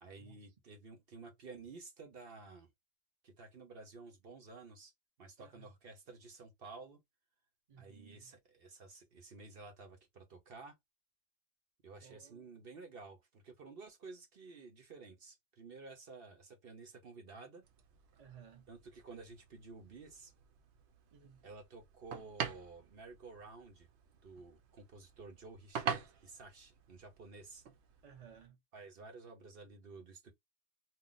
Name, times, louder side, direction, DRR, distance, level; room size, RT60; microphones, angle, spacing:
voice 1, 0.0-2.7 3.2-4.9 5.2-7.0 7.8-10.8 11.8-17.6 18.7-20.3 21.4-23.9 24.2-27.6 28.7-30.3, right 3 dB, 60° right, 1.1 m, -52 dB
voice 2, 7.7-8.3 12.0-12.5 18.2-18.7 21.1-21.4 28.0-28.6, right 8 dB, 40° right, 0.8 m, -58 dB
sound 1, 17.6-28.5, right 7 dB, 80° right, 0.9 m, -46 dB
2.8 x 2.0 x 3.8 m
omnidirectional pair, 1.1 m